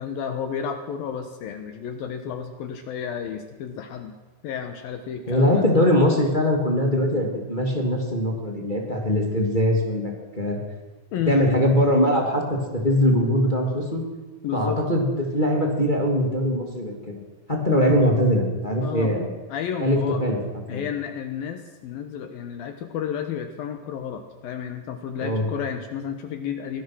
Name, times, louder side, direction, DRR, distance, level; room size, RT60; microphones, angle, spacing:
voice 1, 0.0-4.1 4.4-5.6 11.1-11.4 14.4-14.8 18.8-19.1 19.5-20.2 20.7-26.8, left 8 dB, 70° left, 7 dB, 2.7 m, -31 dB
voice 2, 5.3-10.6 11.3-14.1 14.5-17.2 17.5-19.3 19.8-20.4 20.7-20.9 25.2-25.5, equal, 15° left, 1 dB, 2.4 m, -22 dB
23.0 x 18.0 x 6.3 m, 1.2 s
omnidirectional pair, 5.0 m